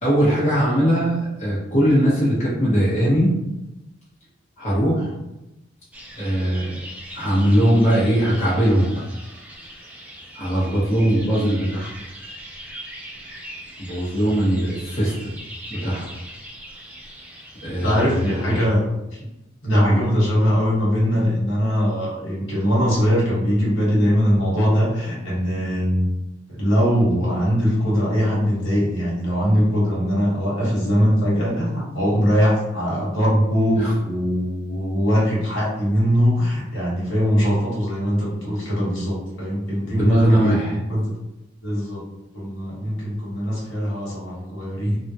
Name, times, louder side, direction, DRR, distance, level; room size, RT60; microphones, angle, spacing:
voice 1, 0.0-3.3 4.6-5.1 6.2-6.7 7.1-9.0 10.3-11.9 13.8-15.3 15.7-16.1 17.6-18.6 19.7-20.0 33.8-33.9 39.9-40.8, equal, 35° left, -9 dB, 0.9 m, -20 dB
sound 1, 5.9-18.7, equal, 5° right, 0.5 m, -40 dB
voice 2, 17.8-18.8 19.1-19.2 19.6-26.1 26.6-41.1 41.6-42.0 42.3-45.0, equal, 70° left, -6 dB, 1.3 m, -21 dB
3.5 x 2.3 x 2.8 m, 0.95 s
head